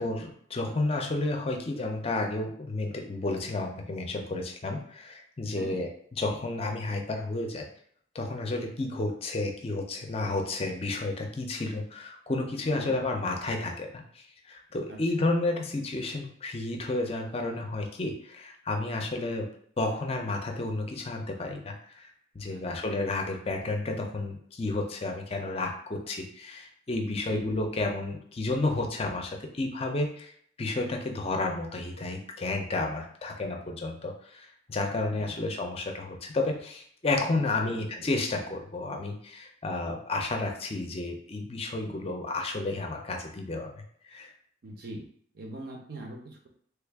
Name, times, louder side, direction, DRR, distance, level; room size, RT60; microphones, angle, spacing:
voice 1, 0.0-7.7 8.1-19.5 19.8-30.3 30.6-44.3, left 2 dB, 30° left, 3 dB, 0.5 m, -31 dB
voice 2, 12.7-13.0 14.9-15.3 22.5-22.9 27.1-27.4 34.9-35.4 37.4-38.1 44.6-45.0 45.3-46.5, right 1 dB, 50° right, 1 dB, 0.7 m, -43 dB
3.3 x 2.4 x 3.4 m, 0.62 s
head